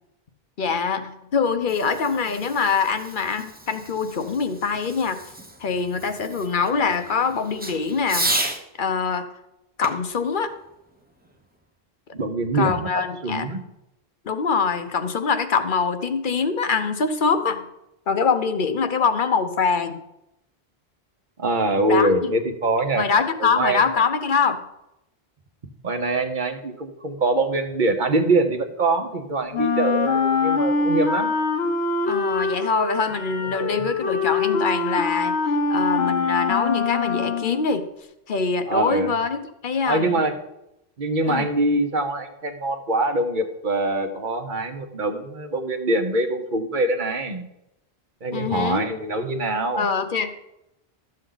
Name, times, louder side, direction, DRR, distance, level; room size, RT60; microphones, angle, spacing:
voice 1, 0.6-5.2 5.6-8.3 8.8-9.3 9.8-10.5 12.5-13.5 14.2-17.6 18.1-20.0 21.9-22.1 23.0-24.6 32.1-35.4 35.7-37.9 38.3-40.2 41.3-41.5 48.3-48.9 49.8-50.3, left 5 dB, 55° left, 9 dB, 0.9 m, -24 dB
Fireworks, 1.5-8.6 9.8-11.5, right 1 dB, 10° right, 0.7 m, -33 dB
voice 2, 12.1-12.9 13.2-13.6 21.4-23.1 23.4-23.8 25.8-31.4 33.6-33.9 38.7-39.1 39.8-40.4 41.0-47.5 48.2-49.9, right 2 dB, 50° right, 6 dB, 1.1 m, -24 dB
Wind instrument woodwind instrument, 29.5-37.7, left 4 dB, 85° left, 1.3 m, -24 dB
12.5 x 7.6 x 3.9 m, 0.87 s
omnidirectional pair, 1.1 m